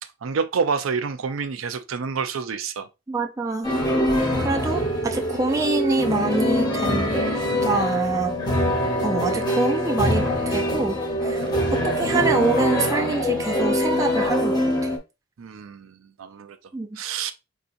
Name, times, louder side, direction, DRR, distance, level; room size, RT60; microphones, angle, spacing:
voice 1, 0.0-2.9 4.1-4.5 9.3-9.5 11.4-11.7 15.4-16.6 16.9-17.3, right 5 dB, 85° right, 0.5 m, -29 dB
voice 2, 3.1-3.7 4.4-7.2 7.6-8.4 9.0-11.4 11.7-14.9 16.7-17.0, right 3 dB, 15° right, 0.3 m, -25 dB
sound 1, 3.6-15.0, equal, 20° left, 0.8 m, -23 dB
4.6 x 2.7 x 2.5 m
head